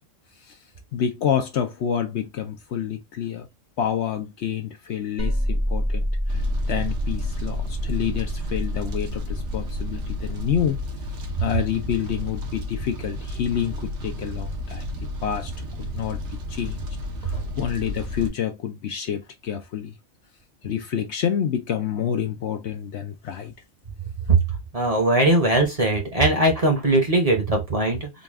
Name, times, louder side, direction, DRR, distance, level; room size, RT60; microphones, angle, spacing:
voice 1, 0.9-3.5 3.8-10.8 11.4-15.5 15.8-16.9 17.2-20.0 20.6-23.5, left 9 dB, 65° left, 0.8 m, -28 dB
sound 1, 5.2-10.7, equal, 15° right, 0.6 m, -28 dB
Fire, 6.3-18.3, left 1 dB, 60° right, 1.2 m, -33 dB
voice 2, 24.7-28.1, right 2 dB, 30° right, 0.9 m, -20 dB
4.0 x 2.3 x 3.5 m
omnidirectional pair, 1.4 m